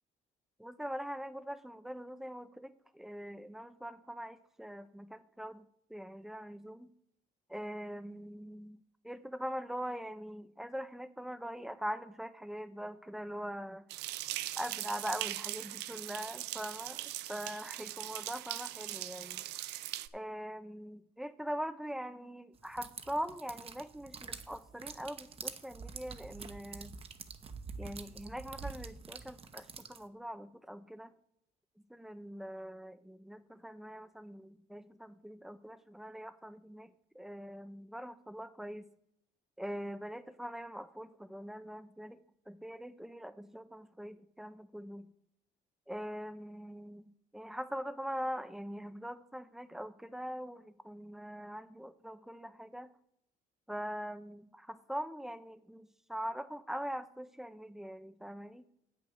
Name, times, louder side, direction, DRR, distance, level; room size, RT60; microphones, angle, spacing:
voice 1, 0.6-6.9 7.5-13.9 14.6-19.4 20.1-26.9 27.8-31.1 31.9-38.9 39.6-45.1 45.9-47.1 47.3-52.9 53.7-58.6, equal, ahead, 13 dB, 0.6 m, -42 dB
sound 1, 13.9-20.1, right 15 dB, 85° right, 0.5 m, -40 dB
sound 2, 22.6-30.1, right 5 dB, 35° right, 0.8 m, -46 dB
7.8 x 6.7 x 6.4 m, 0.74 s
cardioid pair, 110°, 17 cm